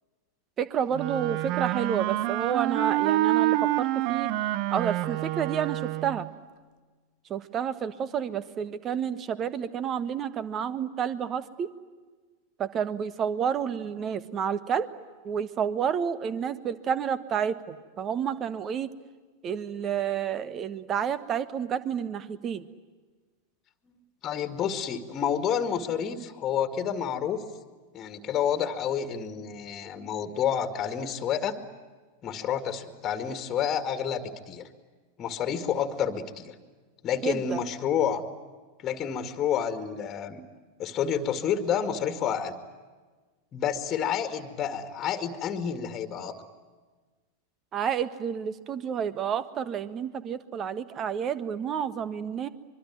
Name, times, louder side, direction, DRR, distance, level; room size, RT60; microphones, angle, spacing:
voice 1, 0.6-4.3 4.7-6.3 7.3-11.7 12.6-14.9 15.2-18.9 19.4-22.7 37.2-37.6 47.7-52.5, right 8 dB, 30° right, 15 dB, 1.5 m, -30 dB
Wind instrument woodwind instrument, 0.9-6.3, right 16 dB, 45° right, 0.8 m, -27 dB
voice 2, 23.9-27.4 27.9-31.6 32.2-34.7 35.2-36.5 37.0-38.2 38.8-40.4 40.8-42.5 43.5-46.3, left 8 dB, 30° left, 9 dB, 2.1 m, -29 dB
24.5 x 23.5 x 9.2 m, 1.4 s
figure-of-eight pair, 90°, 0 cm